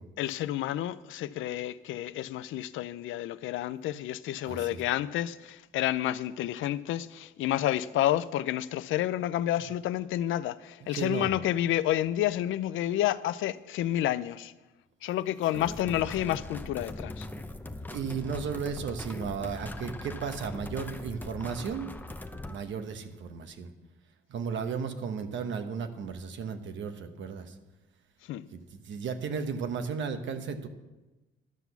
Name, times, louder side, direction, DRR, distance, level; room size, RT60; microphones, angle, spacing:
voice 1, 0.2-14.5 15.0-17.3 28.3-28.5, left 13 dB, 80° left, 0.5 m, -30 dB
voice 2, 4.4-4.8 10.8-11.4 17.9-21.9 22.4-23.7 24.3-27.6 28.5-30.7, right 6 dB, 70° right, 1.2 m, -35 dB
sound 1, 15.5-22.6, left 2 dB, 10° left, 0.7 m, -40 dB
12.0 x 6.0 x 7.1 m
cardioid pair, 90°, 20 cm